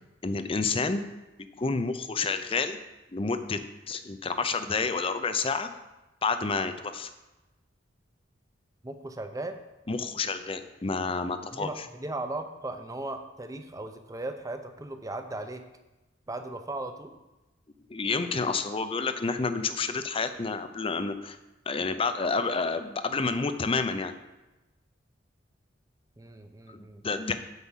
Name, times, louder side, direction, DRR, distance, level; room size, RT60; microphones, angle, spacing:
voice 1, 0.2-1.0 1.6-2.8 3.1-3.6 3.9-5.7 6.2-7.1 9.9-11.9 17.9-21.4 21.7-24.1 26.7-27.3, left 4 dB, 30° left, 10 dB, 0.5 m, -29 dB
voice 2, 8.8-9.6 11.5-15.6 16.3-17.2 26.2-27.0, right 2 dB, 20° right, 7 dB, 0.6 m, -37 dB
8.2 x 5.0 x 7.3 m, 1.0 s
head